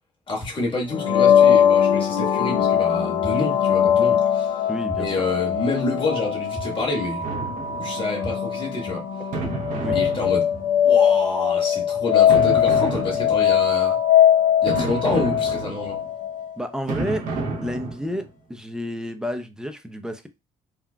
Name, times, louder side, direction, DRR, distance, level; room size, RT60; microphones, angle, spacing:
voice 1, 0.3-4.7 4.9-7.3 7.8-9.1 9.9-10.5 10.8-14.0 14.6-16.0, left 3 dB, 40° left, 1.8 m, -28 dB
sound 1, 0.9-16.5, left 9 dB, 75° left, 0.6 m, -21 dB
sound 2, 3.2-3.3 3.9-4.0 4.9-5.0 5.5-5.6 6.5-6.6 7.2-7.3 8.2-8.3 8.9-9.0 9.9-10.0 10.5-10.6, right 1 dB, 50° right, 1.1 m, -34 dB
voice 2, 4.7-5.1 9.8-10.0 16.6-17.3 17.6-20.3, equal, 5° right, 0.6 m, -30 dB
sound 3, 7.2-8.2 9.3-10.9 12.3-13.7 14.7-16.1 16.9-18.3, right 3 dB, 80° right, 0.8 m, -30 dB
3.7 x 2.3 x 2.3 m
supercardioid pair, 70°, 14 cm